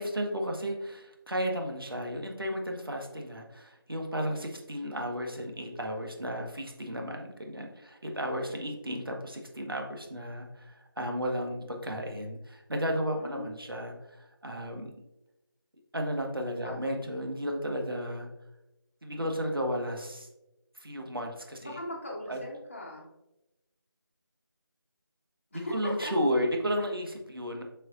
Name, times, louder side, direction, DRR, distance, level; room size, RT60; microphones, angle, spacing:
voice 1, 0.0-14.9 15.9-18.3 19.0-20.3 20.8-21.7 22.3-22.4 25.5-27.6, equal, 65° right, 2 dB, 1.3 m, -33 dB
voice 2, 13.1-13.5 16.6-16.9 20.9-21.3 21.6-23.1 25.5-26.1, equal, 30° left, -2 dB, 1.2 m, -40 dB
7.0 x 5.7 x 2.5 m, 0.94 s
figure-of-eight pair, 165°, 13 cm